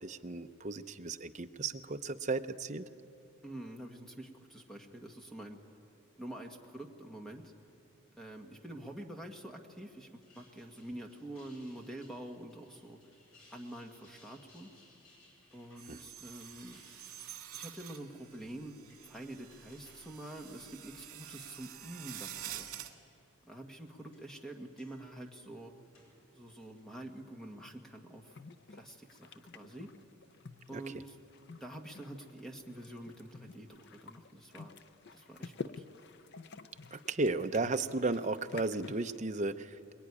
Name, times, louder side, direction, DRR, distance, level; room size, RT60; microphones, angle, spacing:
voice 1, 0.0-2.8 15.9-16.0 30.7-30.8 36.9-39.9, right 3 dB, 35° right, 8 dB, 0.7 m, -34 dB
voice 2, 3.4-5.6 6.2-7.5 8.2-13.1 13.5-14.7 15.5-16.8 17.5-18.8 19.0-22.7 23.5-25.7 26.3-28.3 28.7-29.9 30.7-31.2 31.6-34.8 35.1-35.8, right 1 dB, ahead, 2 dB, 1.7 m, -47 dB
sound 1, 10.0-21.8 22.2-22.8 23.6-26.8, left 2 dB, 75° left, 7.8 m, -65 dB
sound 2, 15.8-22.9, right 11 dB, 75° right, 1.9 m, -48 dB
sound 3, 28.3-39.2, left 4 dB, 50° left, 0.6 m, -49 dB
23.0 x 22.5 x 9.8 m, 2.7 s
head